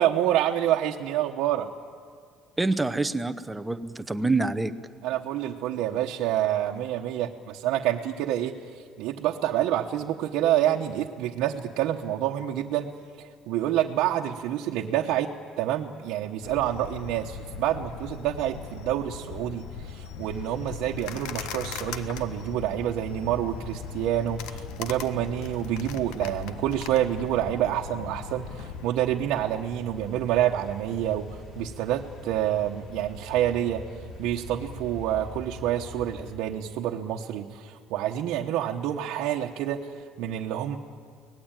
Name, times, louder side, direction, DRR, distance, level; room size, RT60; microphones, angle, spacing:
voice 1, 0.0-1.7 5.0-12.9 13.2-15.3 15.6-33.8 34.2-40.8, right 11 dB, 65° right, 0 dB, 1.1 m, -28 dB
voice 2, 2.6-4.7, right 3 dB, 5° right, 11 dB, 0.7 m, -26 dB
sound 1, 16.4-28.9, left 7 dB, 80° left, 1.4 m, -39 dB
sound 2, 20.2-36.3, left 1 dB, 35° left, 4.7 m, -45 dB
24.5 x 19.0 x 9.0 m, 2.1 s
cardioid pair, 180°, 0 cm